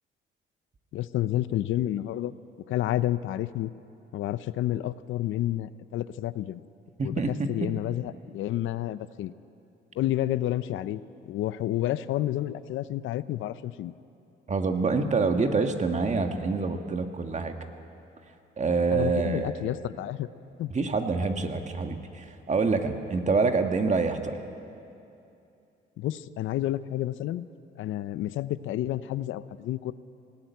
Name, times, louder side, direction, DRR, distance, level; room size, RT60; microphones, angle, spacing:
voice 1, 0.9-2.4 2.7-3.7 4.1-6.6 7.0-9.3 9.9-11.0 11.3-13.9 18.9-20.3 20.6-20.7 26.0-27.5 27.8-29.9, left 13 dB, 80° left, 15 dB, 0.6 m, -30 dB
voice 2, 7.0-7.3 14.5-17.5 18.6-19.7 20.7-24.4, right 4 dB, 35° right, 6 dB, 1.6 m, -26 dB
19.5 x 14.5 x 9.4 m, 2.7 s
cardioid pair, 90°, 20 cm